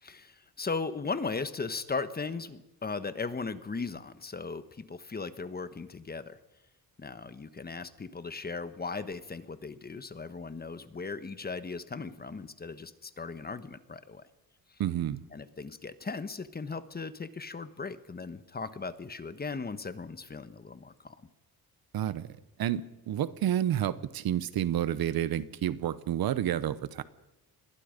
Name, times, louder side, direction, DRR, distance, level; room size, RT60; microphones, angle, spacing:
voice 1, 0.0-6.4 7.0-14.3 15.3-21.2, left 4 dB, 25° left, 12 dB, 1.2 m, -37 dB
voice 2, 14.8-15.2 21.9-22.3 22.6-27.0, right 11 dB, 70° right, 16 dB, 1.0 m, -30 dB
28.5 x 22.0 x 5.3 m, 0.97 s
cardioid pair, 110°, 38 cm